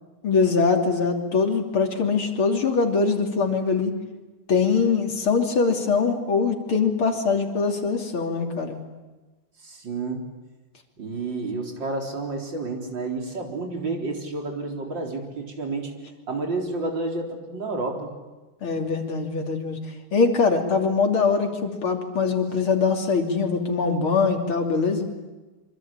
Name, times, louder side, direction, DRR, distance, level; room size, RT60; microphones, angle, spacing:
voice 1, 0.2-3.9 4.5-8.8 18.6-19.8 20.1-25.1, left 5 dB, 70° left, 3 dB, 3.8 m, -22 dB
voice 2, 9.6-10.2 11.0-15.9 16.3-18.1, right 3 dB, 55° right, 2 dB, 4.7 m, -30 dB
26.0 x 25.5 x 8.8 m, 1.2 s
omnidirectional pair, 2.4 m